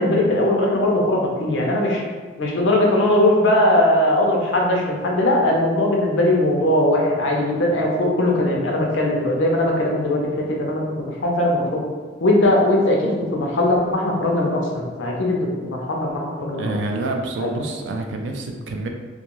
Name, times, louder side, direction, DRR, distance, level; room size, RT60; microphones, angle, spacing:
voice 1, 0.0-2.0 2.4-11.8 12.2-16.7 17.4-17.5, left 1 dB, 80° left, -1 dB, 0.6 m, -20 dB
voice 2, 16.6-18.9, right 2 dB, 70° right, 3 dB, 0.3 m, -27 dB
2.3 x 2.2 x 3.0 m, 1.4 s
head